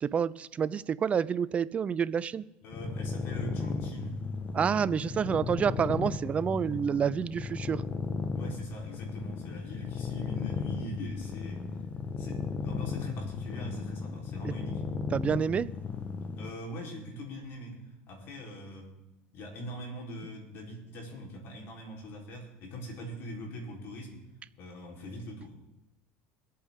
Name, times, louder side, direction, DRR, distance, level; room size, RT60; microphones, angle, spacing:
voice 1, 0.0-2.4 4.5-7.8 15.1-15.7, right 7 dB, 30° right, 18 dB, 0.4 m, -28 dB
voice 2, 2.6-4.2 8.3-11.6 12.2-14.8 16.4-17.8 18.1-18.9 19.3-24.2 24.5-25.5, equal, 55° left, 0 dB, 3.9 m, -42 dB
sound 1, 2.7-16.5, left 5 dB, 30° left, 1.2 m, -35 dB
23.5 x 8.5 x 3.7 m, 0.89 s
supercardioid pair, 115°, 5 cm